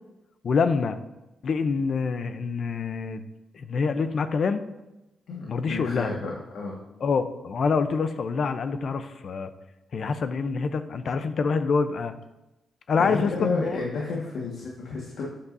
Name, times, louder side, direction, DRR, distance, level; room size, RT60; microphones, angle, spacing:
voice 1, 0.4-1.0 1.4-3.2 3.5-4.6 5.5-6.1 7.0-9.5 9.9-12.1 12.9-13.8, left 5 dB, 60° left, 10 dB, 0.6 m, -26 dB
voice 2, 5.3-6.7 12.9-15.2, left 3 dB, 80° left, -3 dB, 1.6 m, -31 dB
11.5 x 8.4 x 2.7 m, 0.97 s
cardioid pair, 75°, 0 cm